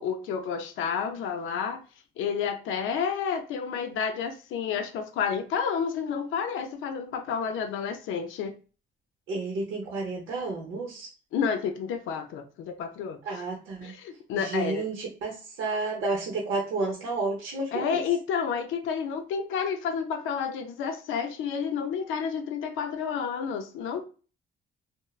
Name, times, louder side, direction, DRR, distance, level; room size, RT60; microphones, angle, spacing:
voice 1, 0.0-1.8 2.2-8.5 11.3-13.4 13.8-14.9 17.7-24.0, left 6 dB, 90° left, 0.5 m, -30 dB
voice 2, 9.3-11.1 13.2-13.9 14.3-18.0, right 3 dB, 80° right, 0.7 m, -31 dB
3.0 x 2.0 x 2.3 m
cardioid pair, 90°, 20 cm